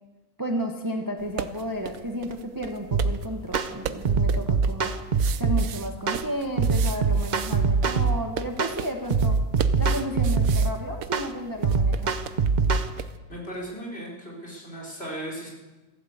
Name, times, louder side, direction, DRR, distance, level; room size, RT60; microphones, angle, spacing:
voice 1, 0.4-4.9 5.4-9.4 9.8-12.2, equal, 15° right, 3 dB, 1.2 m, -32 dB
sound 1, 1.2-13.2, right 9 dB, 75° right, 1.1 m, -39 dB
sound 2, 2.9-3.1 3.5-3.7 4.0-5.6 6.1-6.2 6.6-8.2 8.6-8.8 9.1-10.7 11.1-11.3 11.6-12.9, right 4 dB, 40° right, 0.7 m, -22 dB
voice 2, 13.3-15.5, right 1 dB, 45° left, -3 dB, 4.2 m, -36 dB
15.0 x 11.5 x 8.1 m, 1.2 s
omnidirectional pair, 1.5 m